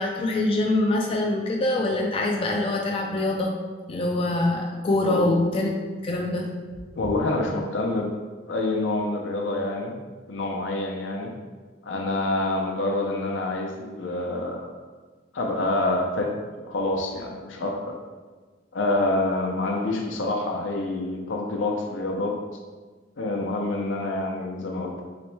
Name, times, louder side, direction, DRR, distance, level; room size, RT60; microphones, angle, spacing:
voice 1, 0.0-3.5 3.9-5.7 6.0-7.0, left 2 dB, 30° left, 0 dB, 0.3 m, -24 dB
voice 2, 5.0-5.3 6.9-8.1 8.5-9.9 10.3-11.3 11.8-14.7 15.3-16.3 16.7-18.0 18.7-22.3 23.2-25.0, left 2 dB, 75° left, 1 dB, 0.6 m, -27 dB
3.2 x 3.0 x 3.2 m, 1.4 s
head